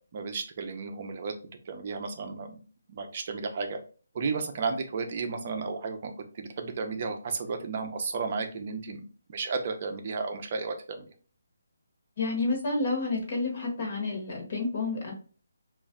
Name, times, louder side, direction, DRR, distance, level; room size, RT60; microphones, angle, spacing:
voice 1, 0.1-1.3 1.7-2.6 2.9-3.8 4.1-9.0 9.3-11.1, right 4 dB, 30° right, 5 dB, 0.6 m, -33 dB
voice 2, 12.2-15.1, left 3 dB, 40° left, 1 dB, 1.2 m, -30 dB
3.0 x 2.5 x 3.6 m, 0.38 s
hypercardioid pair, 175°, 0 cm